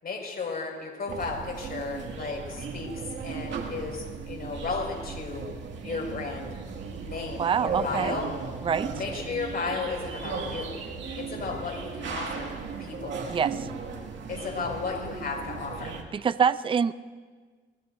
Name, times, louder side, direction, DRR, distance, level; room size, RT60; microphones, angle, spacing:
voice 1, 0.0-5.4 5.8-6.5 7.0-8.3 9.0-10.8 11.2-12.5 12.8-13.2 14.3-15.9, left 4 dB, 50° left, 0 dB, 5.3 m, -34 dB
sound 1, 1.1-16.0, right 5 dB, 70° right, 2.2 m, -36 dB
voice 2, 7.4-8.2 8.6-8.9 13.3-13.7 16.1-16.9, right 7 dB, 25° right, 14 dB, 0.4 m, -25 dB
23.5 x 20.0 x 2.7 m, 1.5 s
cardioid pair, 90°, 20 cm